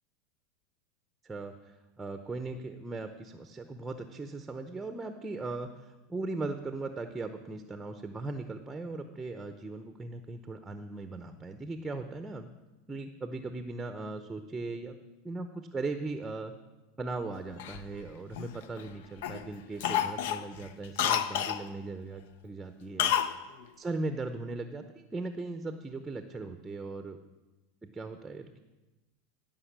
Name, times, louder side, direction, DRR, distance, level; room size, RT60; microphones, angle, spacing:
voice 1, 1.2-12.5 12.9-15.0 15.2-16.5 17.0-23.1 23.8-27.2 27.8-28.6, right 3 dB, 10° right, 8 dB, 0.7 m, -38 dB
Cough, 17.6-18.9 19.2-19.4 19.8-21.6 23.0-23.4 23.6-23.7, left 9 dB, 75° left, 0.7 m, -29 dB
15.5 x 5.5 x 7.3 m, 1.1 s
supercardioid pair, 135°, 0 cm